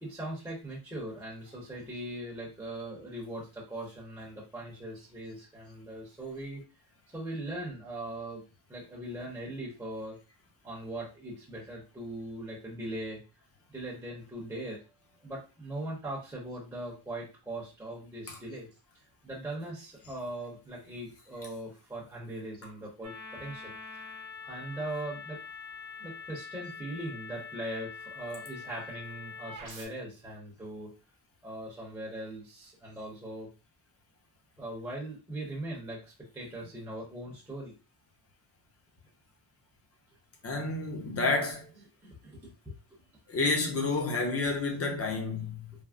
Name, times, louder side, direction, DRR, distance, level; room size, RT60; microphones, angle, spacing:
voice 1, 0.0-6.6 7.1-8.4 8.7-10.2 10.6-13.2 13.7-14.8 15.2-18.7 19.2-24.0 24.4-25.4 26.0-30.9 31.4-33.5 34.6-37.7 40.8-40.9 41.7-43.0 44.5-44.6, right 1 dB, 10° right, 0.8 m, -40 dB
sound 1, 23.0-29.9, left 5 dB, 50° right, 0.8 m, -44 dB
voice 2, 40.4-41.7 43.3-45.7, left 3 dB, 35° left, 0.7 m, -30 dB
3.4 x 2.1 x 2.4 m
wide cardioid pair, 155°, 40 cm